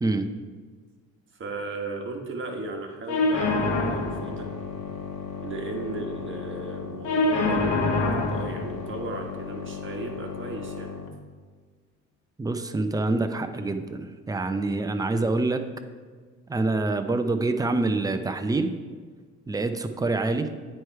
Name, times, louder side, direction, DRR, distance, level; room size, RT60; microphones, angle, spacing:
voice 1, 1.3-4.5 5.4-10.9, right 2 dB, 40° right, 2 dB, 1.3 m, -36 dB
sound 1, 3.1-11.1, left 3 dB, 85° left, 1.2 m, -28 dB
voice 2, 12.4-15.6 16.5-18.7 19.5-20.5, right 2 dB, 10° right, 7 dB, 0.5 m, -26 dB
9.3 x 3.2 x 4.6 m, 1.5 s
cardioid pair, 90°, 30 cm